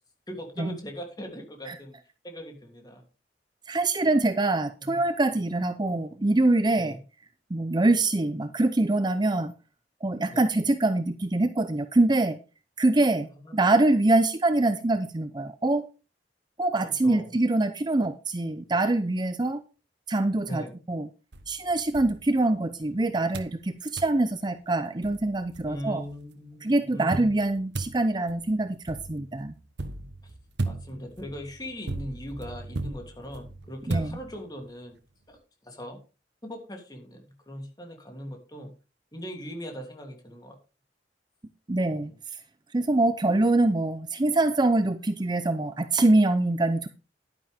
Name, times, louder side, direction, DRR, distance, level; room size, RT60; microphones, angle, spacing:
voice 1, 0.3-2.0 2.2-3.0 4.8-5.0 6.8-7.0 10.3-10.5 13.4-13.6 16.8-17.3 20.5-20.7 25.6-27.3 30.2-30.3 30.7-35.0 35.3-35.4 35.6-36.0 36.4-38.7 39.1-40.6 41.9-42.0, equal, 25° left, 3 dB, 3.0 m, -40 dB
voice 2, 3.7-7.0 7.5-9.5 10.0-12.4 12.8-15.9 16.6-19.6 20.1-21.1 21.5-26.0 26.6-29.5 33.9-34.2 41.7-42.1 42.7-46.9, right 2 dB, 25° right, 11 dB, 0.6 m, -24 dB
sound 1, 21.3-22.9 23.3-23.6 24.0-24.2 24.7-24.8 25.0-26.1 27.1-34.7, right 2 dB, 80° right, 1.2 m, -37 dB
11.5 x 10.5 x 3.5 m, 0.31 s
head